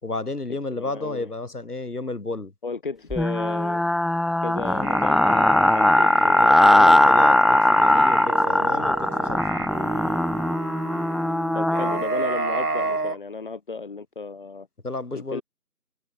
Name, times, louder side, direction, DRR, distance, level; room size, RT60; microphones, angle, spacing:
voice 1, 0.0-2.5 6.2-6.5 6.8-9.4 14.8-15.4, left 2 dB, 70° left, 4.3 m, -32 dB
voice 2, 0.7-1.3 2.6-3.8 4.4-7.1 11.5-14.7 15.1-15.4, left 4 dB, 30° left, 4.5 m, -34 dB
sound 1, 3.1-12.0, left 1 dB, ahead, 0.7 m, -19 dB
sound 2, 4.7-13.2, right 3 dB, 70° right, 2.8 m, -31 dB
figure-of-eight pair, 165°, 47 cm